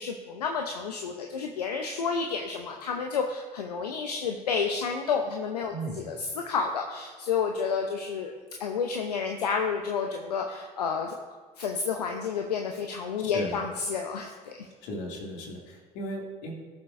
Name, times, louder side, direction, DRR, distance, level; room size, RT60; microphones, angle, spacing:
voice 1, 0.0-8.3 8.6-11.2 11.6-14.7, left 5 dB, 85° left, 3 dB, 0.7 m, -30 dB
voice 2, 5.7-6.0 13.2-13.6 14.8-16.5, equal, 70° left, 0 dB, 2.3 m, -36 dB
18.5 x 7.0 x 2.6 m, 1.5 s
hypercardioid pair, 60°, 20 cm